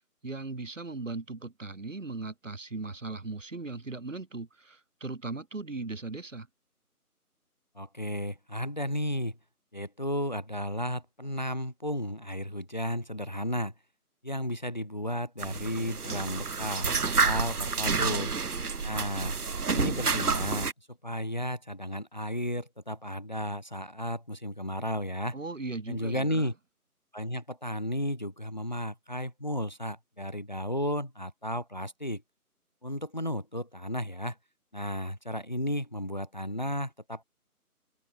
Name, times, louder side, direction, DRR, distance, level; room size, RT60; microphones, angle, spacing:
voice 1, 0.2-6.5 25.3-26.5, right 3 dB, 55° right, 4.4 m, -38 dB
voice 2, 7.7-9.4 9.7-13.7 14.2-18.3 18.8-19.4 19.7-20.7 21.0-25.4 25.9-26.5 27.1-32.2 32.8-34.4 34.7-37.2, equal, 30° left, 1.1 m, -33 dB
sound 1, 15.4-20.7, right 5 dB, 75° right, 1.4 m, -29 dB
open air
figure-of-eight pair, 175°, 45 cm